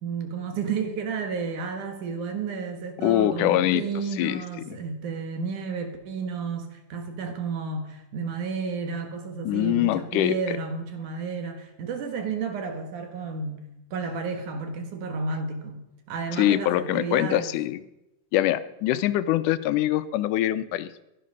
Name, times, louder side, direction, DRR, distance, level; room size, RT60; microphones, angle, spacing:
voice 1, 0.0-17.6, right 5 dB, 75° right, 6 dB, 2.9 m, -32 dB
voice 2, 3.0-3.8 4.2-4.8 9.5-10.3 16.4-17.8 18.3-21.0, left 14 dB, 85° left, 13 dB, 2.2 m, -24 dB
15.5 x 11.0 x 5.5 m, 0.89 s
omnidirectional pair, 3.6 m